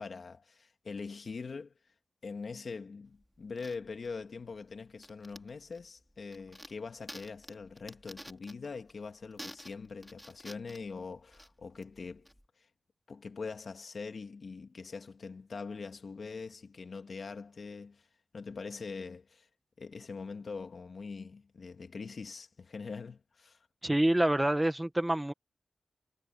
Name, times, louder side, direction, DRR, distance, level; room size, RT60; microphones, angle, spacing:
voice 1, 0.0-1.7 2.2-12.3 13.1-18.0 18.3-19.5 19.8-23.6, left 4 dB, 65° left, 2.2 m, -43 dB
sound 1, 3.1-12.5, equal, ahead, 4.8 m, -52 dB
voice 2, 23.8-25.3, right 1 dB, 15° right, 1.8 m, -27 dB
cardioid pair, 60°, 0 cm